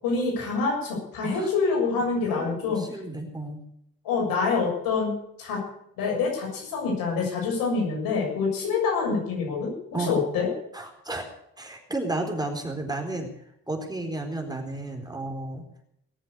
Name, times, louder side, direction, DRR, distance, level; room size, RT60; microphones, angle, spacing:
voice 1, 0.0-2.8 4.0-5.1 5.4-5.6 6.0-10.5, left 4 dB, 90° left, -1 dB, 6.9 m, -26 dB
voice 2, 2.2-3.6 9.9-10.2 10.7-11.3 11.6-13.3 13.7-15.8, right 2 dB, 10° right, 2 dB, 4.3 m, -32 dB
19.5 x 7.7 x 8.5 m, 0.75 s
cardioid pair, 70°, 34 cm